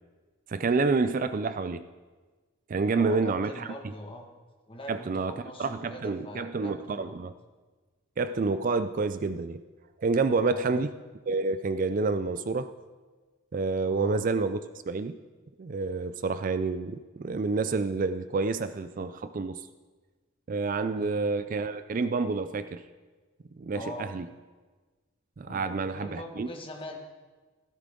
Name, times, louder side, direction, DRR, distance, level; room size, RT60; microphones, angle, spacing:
voice 1, 0.5-1.9 2.7-3.7 4.9-7.3 8.2-9.6 10.0-10.9 11.3-12.7 13.5-14.6 14.9-15.2 15.6-19.7 20.5-22.8 23.6-24.3 25.4-26.5, right 4 dB, 40° right, 12 dB, 0.4 m, -28 dB
voice 2, 2.8-4.3 4.7-7.2 10.5-10.8 13.9-14.2 20.9-21.2 23.7-24.1 25.4-27.0, left 1 dB, 25° left, 2 dB, 1.6 m, -42 dB
16.0 x 13.0 x 3.8 m, 1.3 s
head